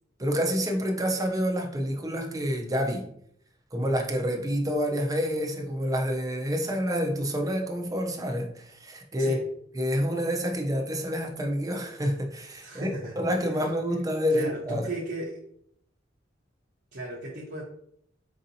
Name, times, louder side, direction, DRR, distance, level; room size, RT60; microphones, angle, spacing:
voice 1, 0.2-3.1 3.7-9.4 9.7-14.9, equal, 20° right, 3 dB, 0.5 m, -28 dB
voice 2, 12.6-13.2 13.5-13.6 14.3-15.4 16.9-17.6, right 1 dB, 60° right, -4 dB, 0.7 m, -35 dB
4.7 x 2.7 x 2.6 m, 0.70 s
head